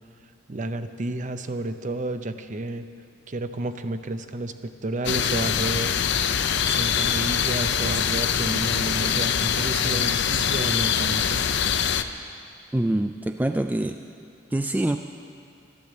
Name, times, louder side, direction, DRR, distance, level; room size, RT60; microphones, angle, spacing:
voice 1, 0.5-2.9 3.3-5.9 6.6-11.5, right 2 dB, 40° right, 9 dB, 0.6 m, -31 dB
sound 1, 5.0-12.0, left 8 dB, 60° left, 0.6 m, -24 dB
voice 2, 12.7-14.0 14.5-15.0, right 1 dB, 10° right, 6 dB, 0.3 m, -25 dB
12.5 x 12.0 x 7.7 m, 2.3 s
head